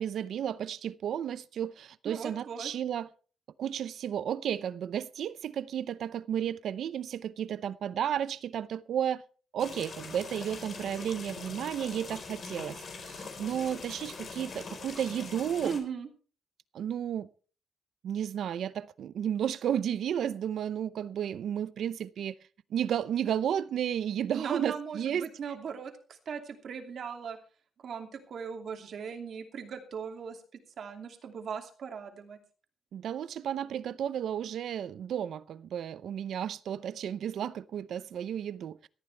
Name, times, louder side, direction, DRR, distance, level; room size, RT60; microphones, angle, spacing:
voice 1, 0.0-3.1 3.6-9.2 9.5-15.7 16.7-17.3 18.0-22.3 22.7-25.3 32.9-38.9, right 9 dB, 75° right, 0.6 m, -33 dB
voice 2, 2.0-2.7 15.6-16.1 24.4-27.4 27.8-30.4 30.8-32.4, right 6 dB, 60° right, 2.6 m, -38 dB
sound 1, 9.6-15.8, left 4 dB, 45° left, 4.3 m, -43 dB
18.5 x 13.0 x 3.4 m
cardioid pair, 130°, 0 cm